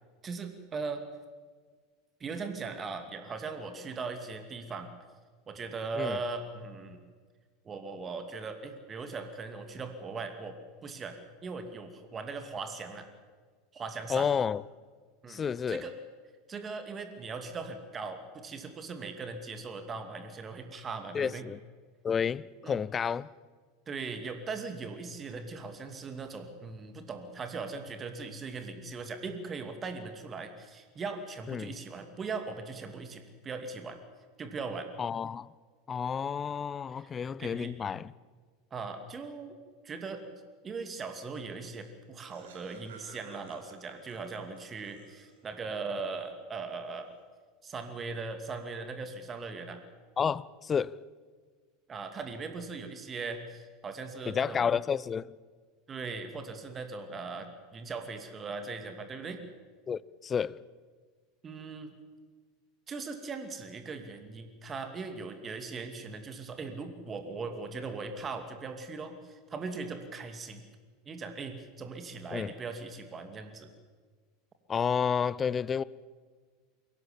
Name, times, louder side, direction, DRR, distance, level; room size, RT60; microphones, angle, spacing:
voice 1, 0.2-1.0 2.2-4.9 5.5-7.0 7.6-10.6 10.8-11.2 11.4-13.1 13.7-14.3 15.2-16.0 16.5-21.4 22.6-22.9 23.9-34.0 34.4-34.9 36.9-37.1 37.4-37.7 38.7-39.6 39.8-47.2 47.6-49.8 51.9-54.7 55.9-59.4 61.4-61.9 62.9-70.6 71.1-73.7, right 4 dB, 25° right, 2.4 m, -39 dB
voice 2, 14.1-14.6 15.3-15.8 21.1-21.6 22.0-23.3 31.5-31.7 35.0-35.5 35.9-38.1 50.2-51.0 54.3-55.4 59.9-60.6 72.3-72.5 74.7-75.8, left 7 dB, 25° left, 0.6 m, -30 dB
Laughter, 41.9-45.6, right 5 dB, 65° right, 4.6 m, -54 dB
22.5 x 18.0 x 7.3 m
figure-of-eight pair, 80°, 0 cm